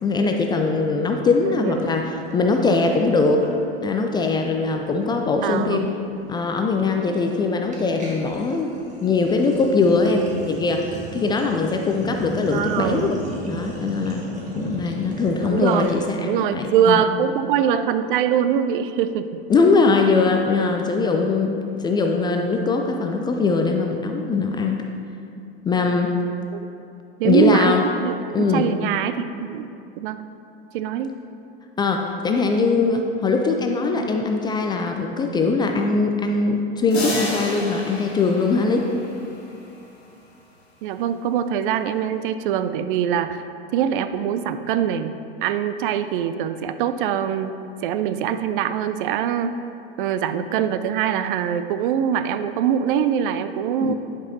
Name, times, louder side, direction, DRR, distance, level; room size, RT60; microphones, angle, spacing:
voice 1, 0.0-3.5 3.8-5.9 6.3-8.7 9.0-13.2 13.5-14.3 14.6-17.0 19.5-24.8 25.6-26.2 27.2-27.8 28.3-28.7 31.8-38.9 53.8-53.9, left 4 dB, 15° left, 3 dB, 0.3 m, -21 dB
Sink (filling or washing), 1.8-4.0 4.3-4.6 4.8-16.2, right 1 dB, 25° right, 1.5 m, -37 dB
voice 2, 5.4-5.9 10.1-10.4 12.5-13.1 15.4-15.9 16.3-19.4 23.5-23.7 26.5-26.6 27.2-28.1 28.5-29.7 30.0-30.2 30.7-31.1 40.8-43.4 43.7-45.1 45.4-49.5 50.0-53.9, right 9 dB, 55° right, 11 dB, 0.4 m, -23 dB
sound 1, 36.9-39.7, left 1 dB, 80° left, 1.6 m, -30 dB
10.5 x 5.2 x 2.7 m, 2.6 s
hypercardioid pair, 90°, 31 cm